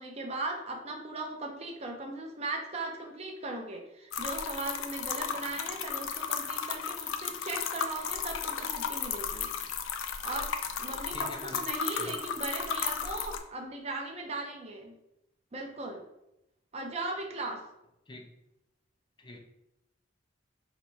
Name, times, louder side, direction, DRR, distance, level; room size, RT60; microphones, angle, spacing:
voice 1, 0.0-9.5 10.2-10.5 10.8-14.9 15.5-16.0 16.7-17.6, right 2 dB, 35° right, 1 dB, 0.6 m, -38 dB
sound 1, 4.1-13.4, left 7 dB, 90° left, 0.4 m, -34 dB
voice 2, 11.1-11.6 12.0-12.1 18.1-18.3 19.2-19.4, left 2 dB, 25° left, 3 dB, 0.5 m, -44 dB
3.0 x 2.9 x 4.5 m, 0.86 s
head